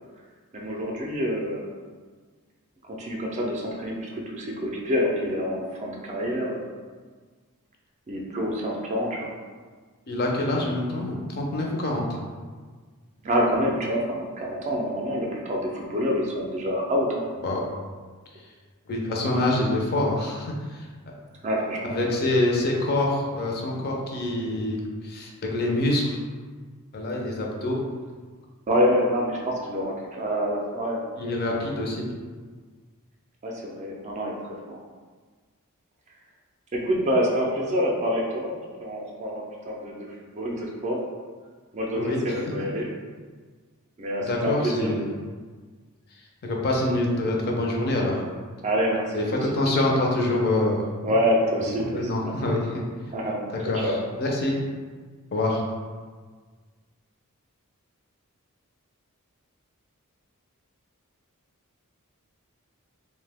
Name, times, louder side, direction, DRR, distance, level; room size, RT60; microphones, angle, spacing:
voice 1, 0.5-1.7 2.9-6.7 8.1-9.3 13.2-17.2 21.4-22.1 28.7-31.0 33.4-34.4 34.7-34.8 36.7-41.0 41.7-42.9 44.0-44.9 48.6-49.1 49.4-49.6 49.9-50.0 51.0-52.3 53.1-53.4 53.8-54.0, equal, 30° right, -1 dB, 0.4 m, -27 dB
voice 2, 10.1-12.2 17.4-17.7 18.9-20.9 21.9-26.2 26.9-27.8 31.2-32.1 42.0-42.3 44.3-45.1 46.4-48.2 49.1-50.8 51.9-52.8 53.5-54.6 55.3-55.6, left 1 dB, 45° left, -1 dB, 0.4 m, -26 dB
2.7 x 2.1 x 3.4 m, 1.5 s
head